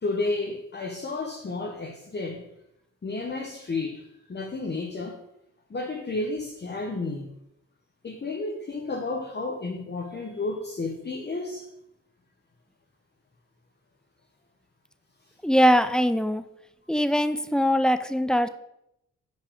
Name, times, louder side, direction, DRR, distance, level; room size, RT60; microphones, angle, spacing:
voice 1, 0.0-2.5 3.0-4.0 4.3-5.2 5.7-7.3 8.0-11.6 17.0-17.1, left 3 dB, 30° left, 0 dB, 0.9 m, -31 dB
voice 2, 15.4-16.4 16.9-18.5, equal, ahead, 11 dB, 0.4 m, -22 dB
5.8 x 4.7 x 4.9 m, 0.80 s
cardioid pair, 65°, 32 cm